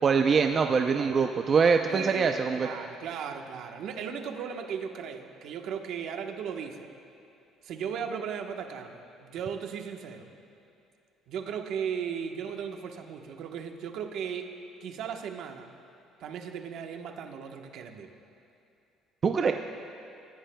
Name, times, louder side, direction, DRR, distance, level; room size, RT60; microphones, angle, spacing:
voice 1, 0.0-2.7 19.2-19.5, right 5 dB, 35° right, 5 dB, 0.5 m, -23 dB
voice 2, 1.9-6.9 7.6-10.3 11.3-15.7 16.2-18.1, right 7 dB, 70° right, 4 dB, 1.1 m, -37 dB
25.5 x 15.5 x 2.3 m, 2.6 s
cardioid pair, 115°, 0 cm